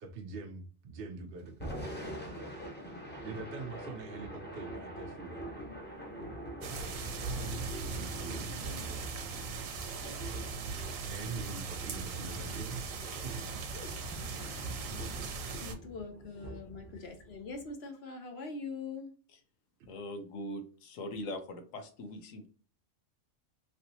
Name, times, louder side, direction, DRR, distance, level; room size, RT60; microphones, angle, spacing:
voice 1, 0.0-2.6 3.2-5.6 7.6-9.1 11.0-12.9 13.2-13.6 14.9-15.3 16.9-17.0 19.8-19.9, right 4 dB, 60° right, 0.6 m, -45 dB
Thunder / Rain, 1.5-17.7, right 1 dB, 10° left, 0.8 m, -45 dB
sound 1, 6.6-15.7, right 4 dB, 80° right, 1.1 m, -39 dB
voice 2, 14.3-14.8 15.5-19.1, left 4 dB, 60° left, 0.8 m, -43 dB
voice 3, 19.9-22.5, left 1 dB, 80° left, 1.1 m, -41 dB
3.2 x 2.8 x 2.7 m
omnidirectional pair, 1.4 m